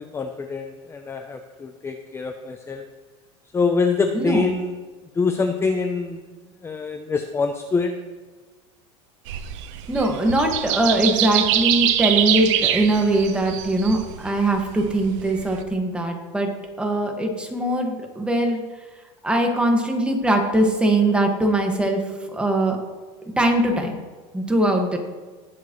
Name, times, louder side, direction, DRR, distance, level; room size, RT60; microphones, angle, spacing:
voice 1, 0.0-2.8 3.5-4.7 5.2-6.2 6.6-7.9, left 4 dB, 15° left, 5 dB, 0.6 m, -25 dB
sound 1, 9.3-15.6, right 11 dB, 75° right, 1.0 m, -24 dB
voice 2, 9.9-16.5 16.8-18.6 19.2-22.0 22.3-22.8 23.4-23.9 24.3-25.0, right 1 dB, 5° right, 2 dB, 1.8 m, -21 dB
19.0 x 7.2 x 3.2 m, 1.3 s
supercardioid pair, 130°, 16 cm